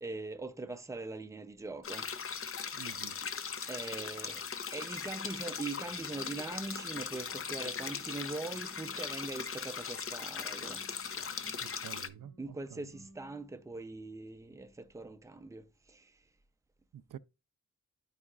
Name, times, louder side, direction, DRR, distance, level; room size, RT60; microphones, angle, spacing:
voice 1, 0.0-2.1 3.7-4.4 4.7-10.8 12.4-16.1, right 3 dB, 10° right, 0.5 m, -42 dB
sound 1, 1.8-12.1, left 6 dB, 45° left, 0.6 m, -39 dB
voice 2, 2.7-3.1 11.6-12.8 17.1-17.2, right 11 dB, 90° right, 0.5 m, -48 dB
Dramatic Guitar, 5.8-15.1, right 1 dB, 65° left, 4.0 m, -61 dB
12.5 x 4.9 x 2.4 m
wide cardioid pair, 180°, 32 cm